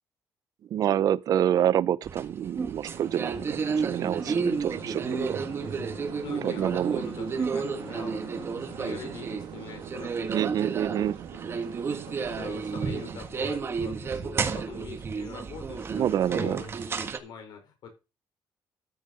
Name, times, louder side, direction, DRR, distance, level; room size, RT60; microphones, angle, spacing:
voice 1, 0.7-5.4 6.4-7.0 10.3-11.2 15.9-16.6, right 10 dB, 55° right, 0.6 m, -27 dB
sound 1, 2.0-17.2, right 5 dB, 30° right, 1.5 m, -32 dB
sound 2, 2.8-13.1, right 10 dB, 80° right, 2.2 m, -43 dB
sound 3, 3.5-9.3, left 6 dB, 85° left, 7.7 m, -49 dB
voice 2, 6.2-8.5 8.8-10.5 10.9-11.4 12.1-17.9, left 6 dB, 65° left, 4.9 m, -43 dB
13.5 x 6.6 x 5.3 m
cardioid pair, 155°, 8 cm